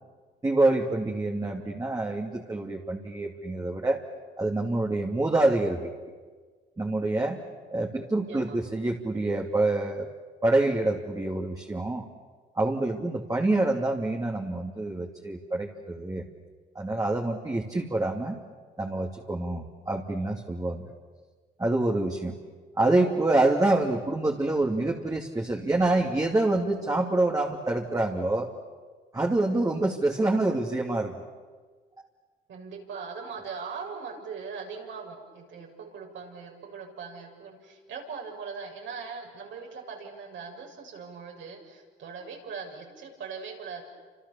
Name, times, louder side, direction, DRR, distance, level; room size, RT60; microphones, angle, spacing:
voice 1, 0.4-4.0 4.4-5.9 6.8-7.4 7.7-10.1 10.4-12.0 12.5-16.2 16.7-18.4 18.8-20.9 21.6-22.4 22.8-28.5 29.1-31.1, right 2 dB, 15° right, -1 dB, 2.6 m, -26 dB
voice 2, 7.8-8.6 32.5-43.8, right 5 dB, 70° right, 1 dB, 6.9 m, -40 dB
29.5 x 27.5 x 7.1 m, 1.5 s
cardioid pair, 90°, 20 cm